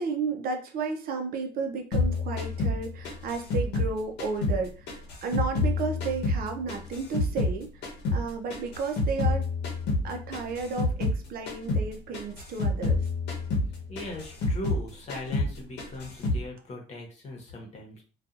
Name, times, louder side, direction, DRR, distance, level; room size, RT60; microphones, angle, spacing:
voice 1, 0.0-4.9 5.2-7.8 8.1-9.4 10.0-13.1, right 4 dB, 60° right, 4 dB, 0.6 m, -33 dB
sound 1, 1.9-4.6 4.9-7.6 7.8-11.2 11.5-11.9 12.1-14.8 15.1-15.5 15.8-16.4, left 2 dB, 80° left, 0.9 m, -28 dB
voice 2, 13.9-18.0, left 1 dB, 40° left, 0 dB, 1.0 m, -39 dB
2.6 x 2.3 x 2.4 m, 0.38 s
cardioid pair, 110°, 17 cm